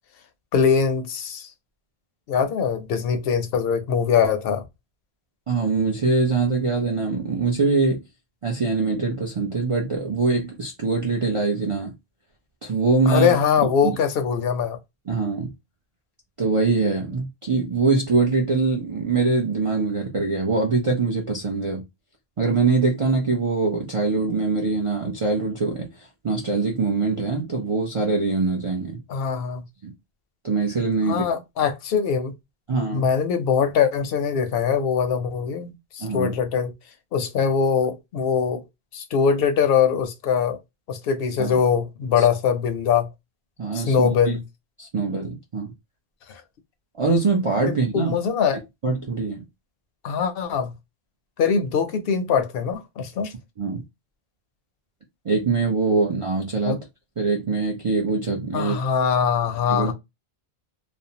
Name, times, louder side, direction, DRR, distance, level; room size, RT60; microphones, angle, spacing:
voice 1, 0.5-1.5 2.3-4.6 13.1-14.8 29.1-29.6 31.1-32.3 32.9-36.7 37.1-38.6 38.9-40.6 40.9-43.1 43.7-44.4 46.3-46.4 47.6-48.6 50.0-50.7 51.4-53.3 56.6-56.8 58.5-59.9, left 6 dB, 70° left, 0.8 m, -22 dB
voice 2, 5.5-8.0 8.4-11.9 12.6-13.4 13.8-14.0 15.1-15.5 16.4-21.8 22.4-29.0 29.8-29.9 30.4-31.3 32.7-33.1 36.0-36.3 41.4-41.6 42.2-42.3 43.6-44.4 44.8-45.7 47.0-48.1 48.8-49.4 53.6-53.8 55.2-56.8 57.2-58.8 59.7-59.9, right 4 dB, 40° right, 0.5 m, -23 dB
2.5 x 2.1 x 2.7 m
omnidirectional pair, 1.1 m